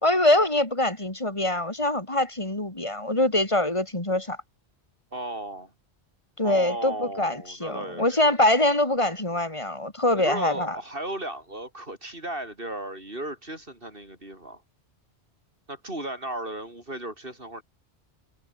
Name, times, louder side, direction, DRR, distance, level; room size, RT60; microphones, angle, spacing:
voice 1, 0.0-4.4 6.4-10.8, left 1 dB, 30° left, 3.4 m, -24 dB
voice 2, 5.1-5.7 6.4-8.4 10.1-14.6 15.7-17.6, right 1 dB, 55° right, 8.2 m, -35 dB
omnidirectional pair, 1.1 m